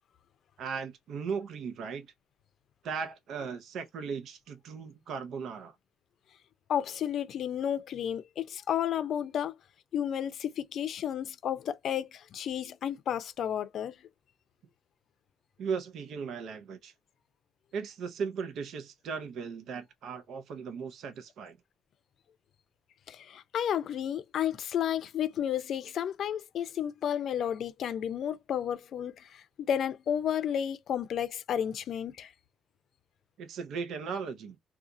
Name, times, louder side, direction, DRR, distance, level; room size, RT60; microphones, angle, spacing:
voice 1, 0.6-2.1 2.8-5.7 15.6-16.9 17.7-21.6 33.4-34.6, right 6 dB, 75° right, 0.6 m, -37 dB
voice 2, 6.7-9.5 9.9-13.9 23.1-32.3, left 9 dB, 70° left, 0.5 m, -32 dB
2.7 x 2.4 x 3.7 m
cardioid pair, 90°, 0 cm